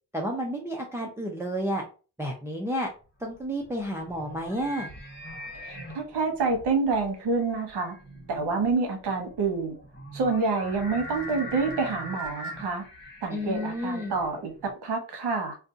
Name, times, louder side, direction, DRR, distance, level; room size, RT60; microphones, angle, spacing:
voice 1, 0.1-1.8 2.2-2.9 3.2-4.9 13.3-14.1, equal, 5° right, 0 dB, 0.4 m, -31 dB
sound 1, 3.2-14.7, equal, 25° left, 1.2 m, -41 dB
voice 2, 5.6-7.9 8.3-9.8 10.1-12.8 13.2-15.6, right 4 dB, 75° right, 4 dB, 1.0 m, -27 dB
2.6 x 2.3 x 3.7 m, 0.35 s
wide cardioid pair, 145°, 40 cm